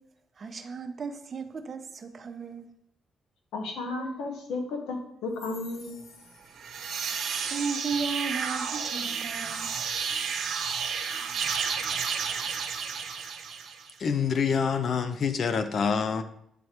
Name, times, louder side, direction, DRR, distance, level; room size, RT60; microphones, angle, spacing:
voice 1, 0.4-2.7 7.5-9.7, right 5 dB, 40° right, 6 dB, 0.7 m, -35 dB
voice 2, 3.5-5.9, left 3 dB, 85° left, 3 dB, 1.1 m, -33 dB
sound 1, 6.5-13.9, right 6 dB, 70° right, 0.8 m, -31 dB
voice 3, 14.0-16.2, left 6 dB, 55° left, 10 dB, 0.4 m, -26 dB
8.2 x 3.2 x 4.3 m, 0.73 s
cardioid pair, 90°, 0 cm